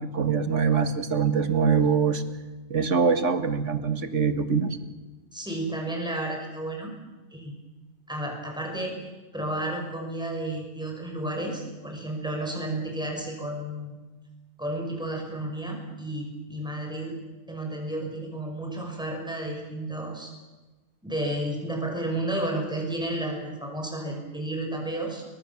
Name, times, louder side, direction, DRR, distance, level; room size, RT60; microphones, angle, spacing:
voice 1, 0.0-2.2 2.7-4.8, right 6 dB, 65° right, 9 dB, 2.1 m, -23 dB
voice 2, 5.3-6.9 7.3-7.5 8.1-8.9 9.3-13.9 14.6-17.2 17.5-20.3 21.0-25.2, right 1 dB, 5° right, 1 dB, 6.0 m, -32 dB
29.5 x 23.5 x 7.3 m, 1.2 s
omnidirectional pair, 1.4 m